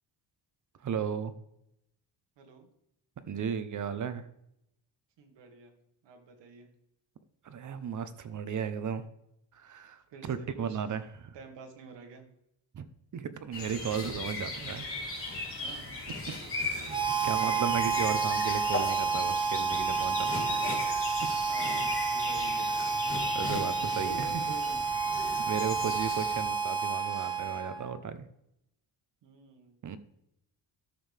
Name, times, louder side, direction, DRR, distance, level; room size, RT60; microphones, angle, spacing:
voice 1, 0.8-1.3 3.3-4.2 7.4-9.0 9.6-11.4 12.7-12.8 13.1-14.9 16.5-17.0 17.2-20.4 23.3-24.4 25.5-28.2 29.8-30.0, right 7 dB, 45° right, 12 dB, 0.8 m, -35 dB
voice 2, 2.4-2.7 5.2-5.7 6.0-6.7 10.1-10.8 11.3-12.2 15.6-16.0 16.4-17.5 20.5-20.8 21.5-22.7 24.0-24.9 29.2-30.0, right 4 dB, 75° right, 4 dB, 1.9 m, -48 dB
sound 1, 13.5-26.5, left 2 dB, 30° left, 3.1 m, -38 dB
Harmonica, 16.9-27.9, right 5 dB, 10° right, 0.9 m, -30 dB
13.0 x 6.4 x 3.5 m, 0.79 s
cardioid pair, 125°, 43 cm